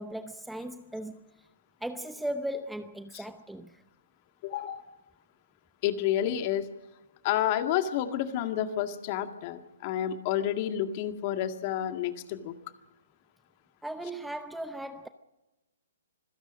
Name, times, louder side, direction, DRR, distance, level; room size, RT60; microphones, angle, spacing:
voice 1, 0.0-1.5 1.8-3.8 13.8-15.1, right 1 dB, 5° right, 0.8 m, -37 dB
voice 2, 4.4-4.9 5.8-6.7 7.2-12.6, left 11 dB, 40° left, 2.0 m, -30 dB
26.0 x 16.5 x 6.3 m
hypercardioid pair, 135°, 0 cm